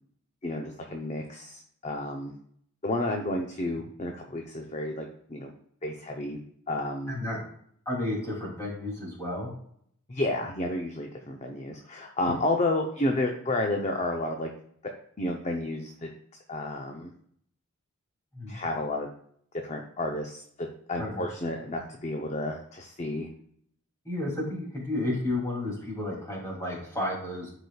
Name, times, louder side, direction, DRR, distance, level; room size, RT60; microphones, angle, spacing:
voice 1, 0.4-2.3 2.8-5.5 5.8-6.4 6.7-7.2 10.1-14.5 15.2-16.1 16.5-17.1 18.5-19.1 19.6-23.3, left 2 dB, 30° left, 2 dB, 0.7 m, -31 dB
voice 2, 7.1-7.4 7.8-9.5 12.2-12.3 18.3-18.6 21.0-21.2 24.0-27.5, left 1 dB, 15° left, -3 dB, 2.7 m, -32 dB
12.0 x 5.0 x 2.3 m, 0.65 s
head